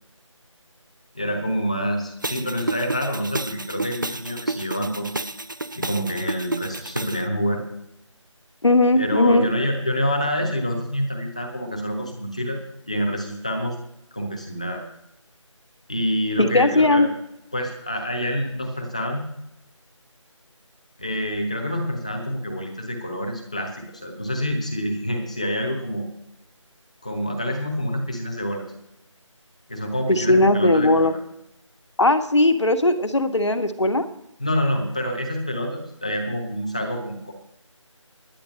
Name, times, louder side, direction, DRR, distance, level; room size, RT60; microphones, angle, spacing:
voice 1, 1.1-5.1 5.7-7.6 8.9-12.6 12.9-13.7 14.1-14.8 15.9-17.1 17.5-19.3 21.0-23.8 24.0-26.1 27.0-28.6 29.7-31.2 34.4-37.3, equal, 15° left, 2 dB, 1.0 m, -27 dB
sound 1, 2.2-7.2, right 2 dB, 40° right, 0.6 m, -31 dB
voice 2, 8.6-9.5 16.4-17.1 30.1-31.1 32.0-34.1, left 2 dB, 60° left, 8 dB, 1.5 m, -18 dB
10.5 x 9.5 x 7.6 m, 0.83 s
figure-of-eight pair, 180°, 17 cm